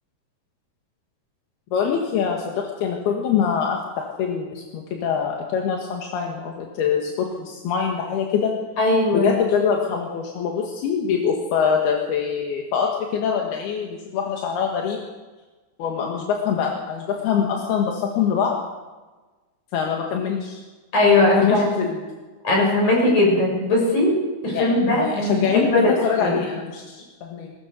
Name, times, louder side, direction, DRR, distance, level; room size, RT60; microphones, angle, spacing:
voice 1, 1.7-8.5 9.1-15.0 15.8-18.5 19.7-20.6 21.4-22.0 24.5-27.5, left 7 dB, 80° left, 0 dB, 3.7 m, -24 dB
voice 2, 8.8-9.3 20.9-21.7 22.4-24.1 24.4-26.4, left 2 dB, 50° left, -1 dB, 7.9 m, -19 dB
21.0 x 20.0 x 6.5 m, 1.3 s
omnidirectional pair, 4.6 m